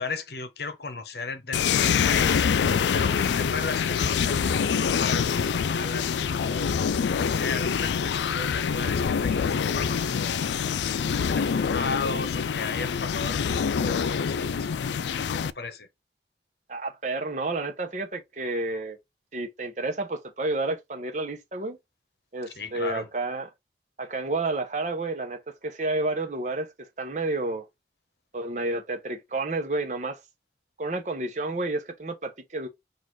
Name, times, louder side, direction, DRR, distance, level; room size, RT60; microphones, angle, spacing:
voice 1, 0.0-2.4 2.9-6.7 7.1-10.5 11.0-14.7 15.4-15.9 22.6-23.1, left 4 dB, 65° left, 1.0 m, -35 dB
sound 1, 1.5-15.5, left 6 dB, 80° left, 0.4 m, -25 dB
voice 2, 16.7-19.0 19.3-21.8 22.3-23.5 24.0-27.7 28.3-30.2 30.8-32.7, right 2 dB, 45° right, 0.8 m, -30 dB
4.3 x 2.6 x 4.5 m
head